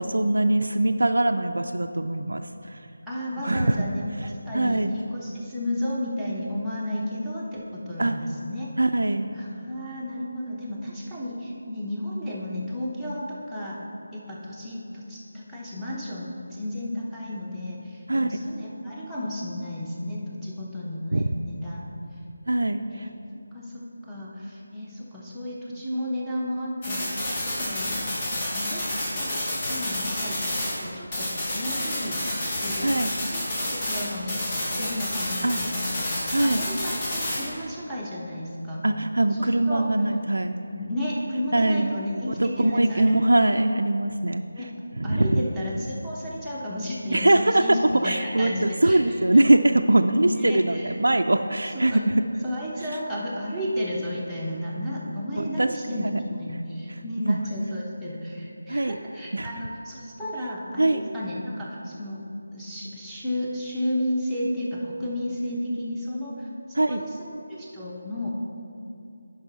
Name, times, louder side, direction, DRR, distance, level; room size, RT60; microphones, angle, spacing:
voice 1, 0.0-2.9 3.4-3.9 4.5-4.9 8.0-8.2 8.8-9.3 18.1-18.3 21.1-21.3 22.5-23.1 32.8-33.1 35.4-35.6 36.3-36.6 38.8-40.6 41.5-41.9 42.3-44.4 45.0-45.4 47.1-47.8 48.0-52.2 55.4-56.1 57.3-57.4 58.7-59.0 59.3-59.5 60.8-61.1 66.7-67.0, right 1 dB, 80° right, 5 dB, 0.3 m, -22 dB
voice 2, 3.1-8.7 9.3-13.8 14.1-21.8 22.9-23.1 23.5-28.2 28.5-36.0 36.4-38.8 39.4-39.9 40.7-43.1 44.5-44.7 45.0-49.4 50.2-50.9 51.7-52.0 52.4-62.2 62.5-68.3, left 1 dB, ahead, -10 dB, 1.0 m, -33 dB
sound 1, 26.8-30.9 31.1-37.5, left 1 dB, 25° left, 1.5 m, -29 dB
10.0 x 5.4 x 4.1 m, 2.6 s
figure-of-eight pair, 165°, 0 cm